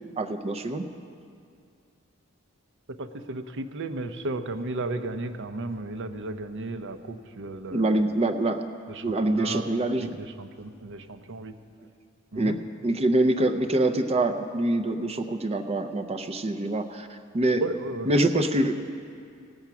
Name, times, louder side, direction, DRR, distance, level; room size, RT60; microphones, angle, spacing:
voice 1, 0.2-0.9 7.7-8.6 9.0-10.2 12.3-17.6 18.1-18.8, right 1 dB, 30° right, 7 dB, 0.5 m, -25 dB
voice 2, 2.9-8.1 8.9-11.5 12.3-12.6 17.5-18.1, right 2 dB, 60° right, 9 dB, 0.7 m, -34 dB
18.0 x 8.0 x 5.9 m, 2.4 s
head